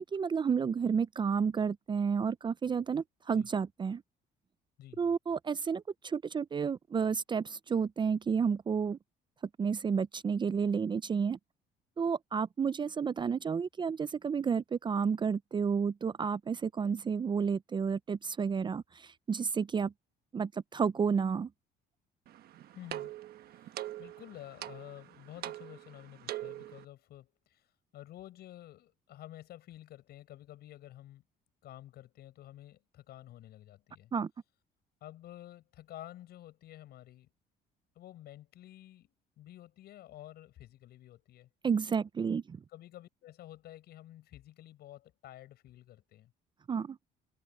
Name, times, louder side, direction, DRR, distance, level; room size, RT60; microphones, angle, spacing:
voice 1, 0.0-4.0 5.0-9.0 9.6-11.4 12.0-19.9 20.3-21.5 34.1-34.3 41.6-42.6 46.7-47.0, right 6 dB, 25° right, 0.5 m, -31 dB
sound 1, 22.3-26.8, right 13 dB, 65° right, 1.3 m, -43 dB
voice 2, 22.7-23.1 23.5-31.2 31.6-34.1 35.0-37.3 38.0-41.5 42.7-46.3, left 13 dB, 70° left, 7.7 m, -51 dB
cardioid pair, 110°, 17 cm